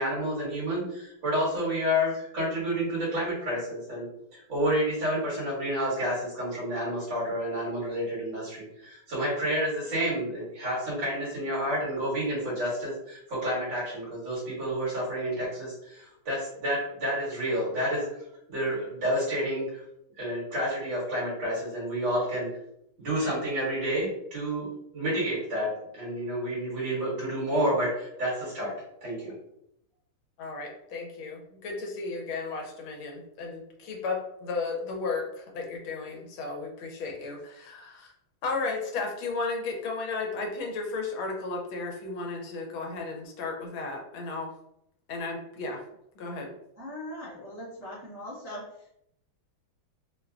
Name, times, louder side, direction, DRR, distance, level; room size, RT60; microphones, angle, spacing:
voice 1, 0.0-4.1 4.3-18.1 18.5-19.8 20.2-22.5 23.0-28.7 29.0-29.3, equal, 65° right, -8 dB, 2.4 m, -29 dB
voice 2, 30.4-38.1 38.4-44.5 45.1-45.8 46.2-46.5, left 3 dB, 80° left, 1 dB, 1.5 m, -34 dB
voice 3, 46.8-48.6, left 1 dB, 30° right, -9 dB, 0.5 m, -40 dB
4.3 x 2.1 x 2.4 m, 0.76 s
omnidirectional pair, 2.2 m